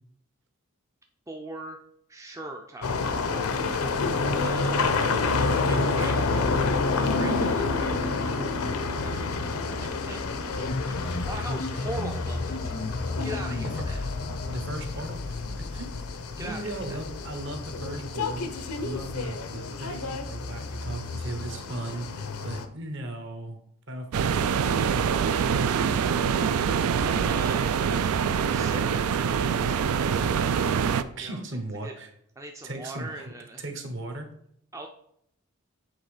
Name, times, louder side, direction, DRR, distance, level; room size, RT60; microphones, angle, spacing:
voice 1, 1.3-1.8 2.1-3.2 4.3-4.8 5.7-6.4 7.0-8.3 9.0-12.7 13.2-14.0 16.4-17.0 27.0-30.4 31.2-31.4 31.8-32.0 32.4-33.6 34.7-34.9, right 1 dB, 15° right, 2 dB, 0.4 m, -41 dB
sound 1, 2.8-22.7, left 3 dB, 80° left, 0.7 m, -29 dB
voice 2, 5.7-6.4 13.6-13.7 14.3-16.0 16.4-23.6 23.9-25.5 31.2-32.1 32.6-33.3 33.6-34.3, right 1 dB, 55° right, 5 dB, 1.1 m, -37 dB
sound 2, 10.6-17.2, left 2 dB, 40° left, 0.5 m, -34 dB
sound 3, 24.1-31.0, right 7 dB, 85° right, 0.4 m, -25 dB
8.0 x 3.5 x 4.9 m, 0.71 s
head